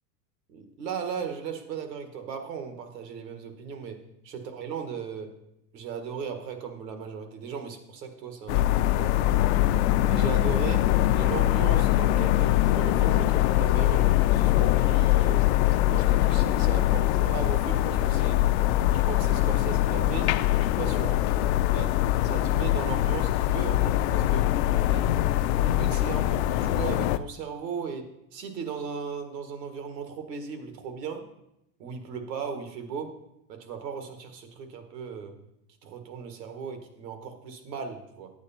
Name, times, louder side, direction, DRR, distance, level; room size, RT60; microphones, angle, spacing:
voice 1, 0.5-5.3 5.7-9.4 10.1-15.5 15.9-18.4 18.9-20.3 20.6-21.2 21.7-24.5 24.9-28.1 28.3-31.2 31.8-33.1 33.5-35.3 35.8-38.3, right 6 dB, 80° right, 6 dB, 1.9 m, -37 dB
sound 1, 8.5-27.2, left 14 dB, 45° left, 0.5 m, -23 dB
10.0 x 8.4 x 4.4 m, 0.83 s
supercardioid pair, 135°, 49 cm